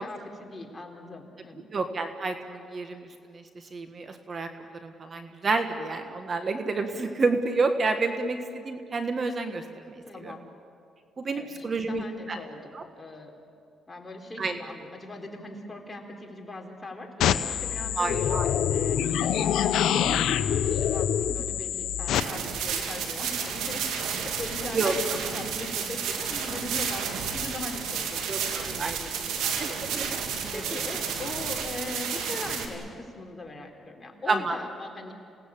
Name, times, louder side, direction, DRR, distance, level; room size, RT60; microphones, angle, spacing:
voice 1, 0.0-1.7 10.1-10.4 11.3-13.3 13.9-19.1 19.4-35.1, left 2 dB, 20° left, 2 dB, 3.8 m, -40 dB
voice 2, 1.7-3.0 3.3-3.4 3.7-10.3 11.2-12.4 12.7-12.8 14.4-14.6 18.0-18.5 24.7-24.9 28.3-28.4 28.8-29.0 29.6-30.5 34.3-34.6, right 3 dB, 40° right, 7 dB, 1.7 m, -29 dB
sound 1, 17.2-22.2, left 9 dB, 80° left, 0.9 m, -25 dB
sound 2, 22.1-32.7, right 7 dB, 90° right, 2.5 m, -31 dB
28.0 x 18.0 x 8.5 m, 2.5 s
cardioid pair, 90°, 0 cm